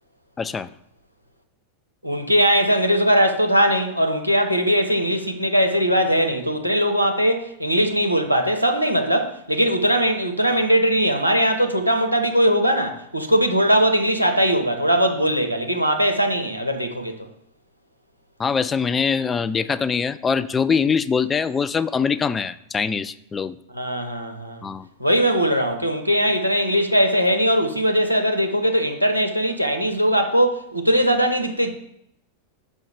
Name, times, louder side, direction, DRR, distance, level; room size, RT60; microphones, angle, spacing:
voice 1, 0.4-0.7 18.4-23.6 24.6-24.9, left 6 dB, 15° left, 0.3 m, -23 dB
voice 2, 2.0-17.3 23.7-24.6 25.0-31.7, equal, 85° right, 0.8 m, -20 dB
5.5 x 5.3 x 4.9 m
figure-of-eight pair, 90°, 0 cm